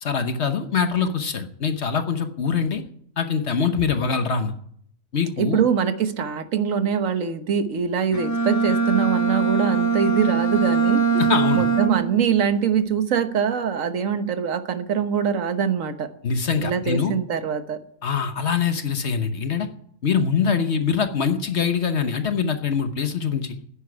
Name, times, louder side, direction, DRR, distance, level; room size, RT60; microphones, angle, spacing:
voice 1, 0.0-2.8 3.2-4.5 5.1-5.6 11.1-11.7 16.2-17.1 18.0-19.7 20.0-23.6, left 6 dB, 55° left, 8 dB, 1.3 m, -23 dB
voice 2, 5.4-11.0 11.5-16.1 16.6-17.8, right 7 dB, 75° right, 9 dB, 1.5 m, -23 dB
Bowed string instrument, 8.1-12.2, right 5 dB, 15° left, 1.5 m, -21 dB
10.0 x 10.0 x 9.7 m, 0.67 s
omnidirectional pair, 1.4 m